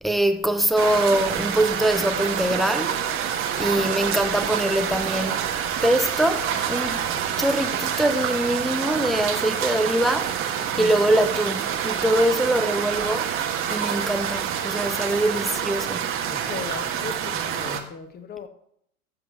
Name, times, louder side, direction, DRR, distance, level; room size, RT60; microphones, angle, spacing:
voice 1, 0.0-3.0 3.6-5.5 5.8-7.1 7.4-10.4 10.8-13.4 13.7-16.2, right 1 dB, ahead, 0.5 m, -23 dB
sound 1, 0.8-17.8, right 8 dB, 30° right, 1.2 m, -27 dB
voice 2, 10.7-11.2 16.3-18.5, left 6 dB, 20° left, 1.3 m, -37 dB
14.0 x 7.6 x 3.1 m
figure-of-eight pair, 90°, 43 cm